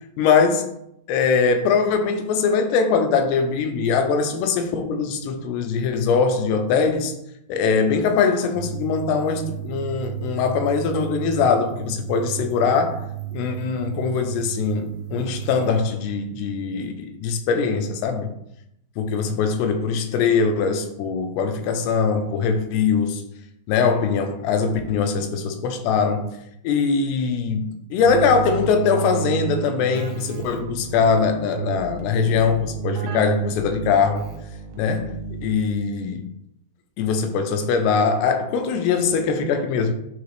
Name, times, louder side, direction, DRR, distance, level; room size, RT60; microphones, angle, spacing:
voice 1, 0.2-0.7 1.1-7.1 7.5-13.0 13.3-18.3 19.0-23.2 23.7-26.3 26.6-34.3 34.8-35.1 35.4-36.2 37.0-39.9, left 5 dB, 80° left, 2.5 m, -22 dB
sound 1, 8.5-15.8, right 15 dB, 90° right, 2.0 m, -33 dB
Keyboard (musical), 28.0-35.8, right 6 dB, 75° right, 2.7 m, -31 dB
9.4 x 3.4 x 3.2 m
omnidirectional pair, 5.2 m